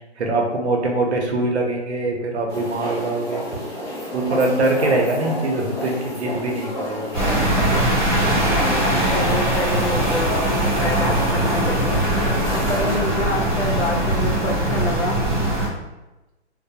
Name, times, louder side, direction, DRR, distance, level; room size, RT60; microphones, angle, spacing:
voice 1, 0.2-3.6 4.1-7.1, right 2 dB, 70° right, 1 dB, 0.7 m, -23 dB
sound 1, 2.5-13.0, equal, 25° left, 0.5 m, -30 dB
sound 2, 7.1-15.7, right 1 dB, 15° right, 1.1 m, -21 dB
voice 2, 8.7-12.0 12.5-15.2, left 1 dB, 75° left, -1 dB, 0.8 m, -27 dB
2.2 x 2.0 x 2.7 m, 1.0 s
hypercardioid pair, 165°, 35 cm